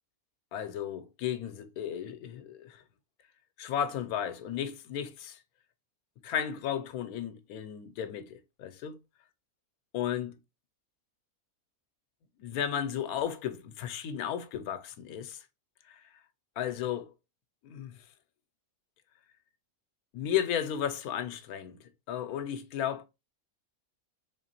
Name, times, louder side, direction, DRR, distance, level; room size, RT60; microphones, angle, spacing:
voice 1, 0.5-2.8 3.6-5.4 6.2-9.0 9.9-10.4 12.4-15.4 15.9-16.0 16.6-17.1 17.6-18.0 20.1-23.0, left 9 dB, 90° left, 1.1 m, -34 dB
3.9 x 3.2 x 2.8 m
omnidirectional pair, 1.5 m